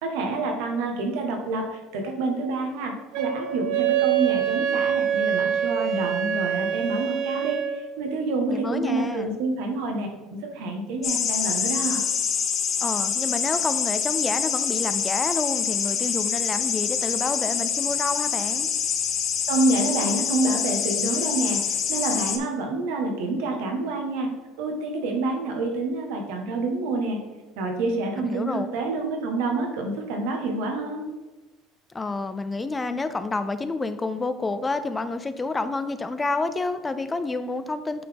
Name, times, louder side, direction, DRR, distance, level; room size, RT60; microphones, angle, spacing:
voice 1, 0.0-12.0 19.5-24.3 24.6-27.2 27.6-31.1, right 2 dB, 85° right, 2 dB, 1.3 m, -27 dB
Wind instrument woodwind instrument, 3.1-7.8, right 9 dB, 70° right, 0.9 m, -25 dB
voice 2, 8.5-9.3 12.8-18.7 28.2-28.7 31.9-38.0, left 3 dB, 15° left, 11 dB, 0.3 m, -29 dB
sound 1, 11.0-22.4, left 7 dB, 45° left, 0.7 m, -26 dB
8.4 x 4.0 x 3.5 m, 1.2 s
cardioid pair, 135°, 0 cm